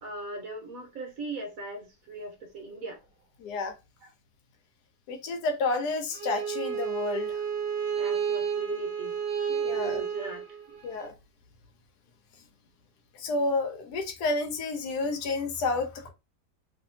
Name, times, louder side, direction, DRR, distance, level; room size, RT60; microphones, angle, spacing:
voice 1, 0.0-3.1 4.0-4.1 8.0-9.1 9.7-10.4, right 2 dB, 60° right, 1.1 m, -39 dB
voice 2, 3.4-3.7 5.1-7.4 9.5-10.0 10.8-11.1 13.1-16.1, left 3 dB, 75° left, 1.2 m, -30 dB
Bowed string instrument, 6.1-11.1, right 7 dB, 35° right, 0.8 m, -31 dB
2.8 x 2.7 x 2.6 m
omnidirectional pair, 1.8 m